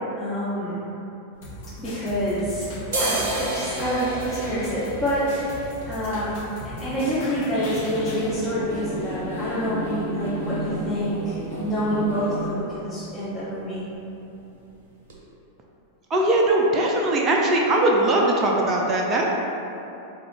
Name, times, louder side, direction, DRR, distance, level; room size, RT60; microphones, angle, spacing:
voice 1, 0.2-0.8 1.8-6.3 6.8-13.9, equal, 15° left, -11 dB, 0.7 m, -27 dB
sound 1, 1.3-2.4 2.8-10.5 10.8-10.9 11.1-11.7 12.0-12.2 12.5-12.7 13.0-13.7 14.1-14.2 14.7-14.8 15.1-15.2, right 2 dB, 60° right, 0.7 m, -34 dB
sound 2, 1.4-8.3, left 1 dB, 50° left, 0.9 m, -38 dB
sound 3, 7.5-12.5, equal, 80° left, 0.8 m, -32 dB
voice 2, 16.1-19.2, right 1 dB, 30° right, -1 dB, 0.4 m, -20 dB
3.8 x 2.3 x 3.5 m, 2.9 s
figure-of-eight pair, 90°, 0 cm